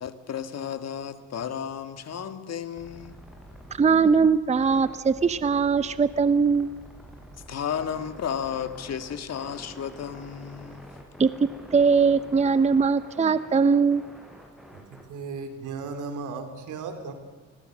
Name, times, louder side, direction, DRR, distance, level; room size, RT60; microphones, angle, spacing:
voice 1, 0.0-3.2 7.5-10.9, left 8 dB, 55° left, 10 dB, 1.9 m, -33 dB
sound 1, 2.7-15.0, equal, ahead, 6.6 m, -47 dB
voice 2, 3.8-6.7 11.2-11.3 11.7-14.0, right 5 dB, 25° right, 14 dB, 0.7 m, -21 dB
voice 3, 15.1-17.1, right 4 dB, 85° right, 7 dB, 3.5 m, -35 dB
28.0 x 21.5 x 6.7 m, 1.3 s
cardioid pair, 90°, 30 cm